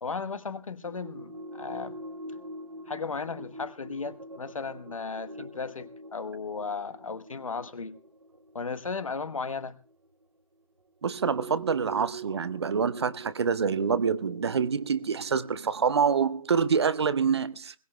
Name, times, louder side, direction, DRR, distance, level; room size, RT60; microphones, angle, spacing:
voice 1, 0.0-2.0 2.9-8.0 8.5-9.8, left 4 dB, 70° left, 1.1 m, -35 dB
sound 1, 0.8-10.1 11.0-15.5, right 2 dB, 90° right, 1.2 m, -44 dB
voice 2, 11.0-17.7, right 6 dB, 50° right, 0.6 m, -26 dB
21.5 x 18.0 x 2.2 m
figure-of-eight pair, 150°, 18 cm